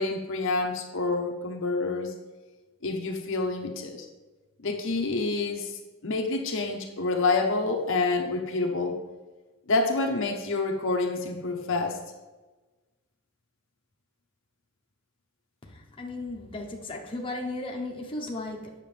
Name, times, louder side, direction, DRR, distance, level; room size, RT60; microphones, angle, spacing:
voice 1, 0.0-2.1 2.8-3.9 4.6-5.7 6.0-9.0 9.7-12.0, left 3 dB, 60° left, 3 dB, 0.9 m, -27 dB
voice 2, 16.0-18.7, left 2 dB, 25° left, 0 dB, 0.9 m, -35 dB
9.1 x 6.5 x 3.3 m, 1.2 s
head